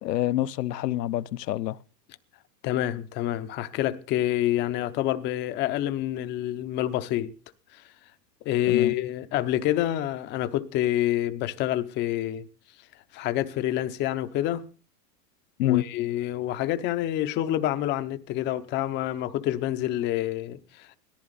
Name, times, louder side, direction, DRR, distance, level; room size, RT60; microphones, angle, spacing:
voice 1, 0.0-1.8 8.7-8.9 15.6-15.8, left 14 dB, 75° left, 0.9 m, -26 dB
voice 2, 2.6-7.3 7.7-7.8 8.4-12.5 13.1-14.7 15.6-21.0, left 13 dB, 20° left, 0.7 m, -27 dB
17.5 x 14.5 x 4.0 m
supercardioid pair, 150°, 50 cm